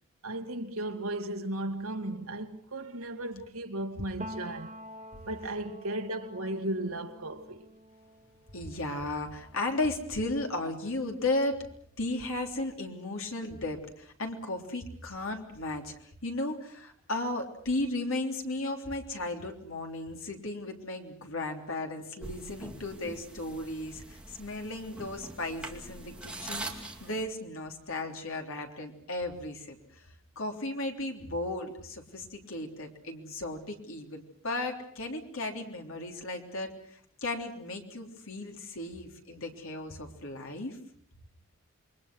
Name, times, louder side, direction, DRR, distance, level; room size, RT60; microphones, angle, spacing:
voice 1, 0.2-4.8 5.3-7.7, right 1 dB, 80° right, 2.0 m, -35 dB
Piano, 4.2-11.8 12.2-13.7, equal, 35° right, 2.1 m, -49 dB
voice 2, 8.5-11.6 12.0-29.8 30.3-40.8, left 2 dB, 70° left, 3.4 m, -35 dB
sound 1, 22.2-27.2, right 2 dB, 5° right, 2.3 m, -43 dB
28.0 x 23.0 x 6.2 m
head